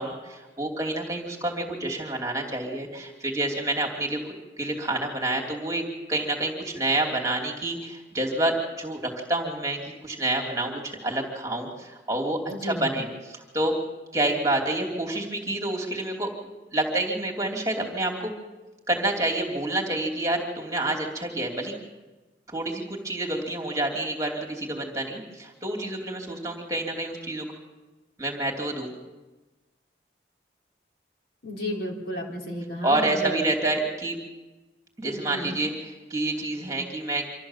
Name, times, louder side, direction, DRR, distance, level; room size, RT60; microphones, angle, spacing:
voice 1, 0.0-4.2 4.6-5.8 6.1-13.7 14.1-16.3 16.7-18.3 18.9-21.7 22.5-27.5 28.2-28.9 32.8-34.2 35.0-37.2, right 2 dB, 20° right, 0 dB, 2.9 m, -28 dB
voice 2, 12.5-12.9 31.4-33.4 35.3-35.6, equal, 60° left, -1 dB, 4.1 m, -32 dB
25.5 x 14.5 x 7.4 m, 1.2 s
head